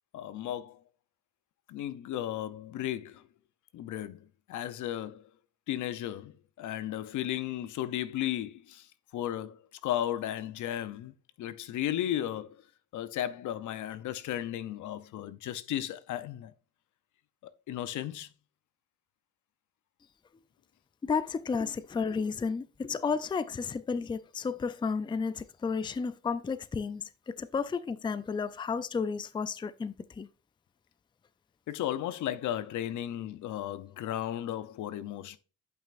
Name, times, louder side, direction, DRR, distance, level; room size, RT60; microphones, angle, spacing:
voice 1, 0.1-0.8 1.7-3.3 3.7-5.3 5.7-8.9 9.1-12.6 12.9-16.5 17.4-18.3 31.7-35.4, left 12 dB, 75° left, 0.7 m, -35 dB
voice 2, 21.0-30.3, left 5 dB, 15° left, 0.4 m, -32 dB
11.0 x 5.7 x 2.5 m
cardioid pair, 90°, 30 cm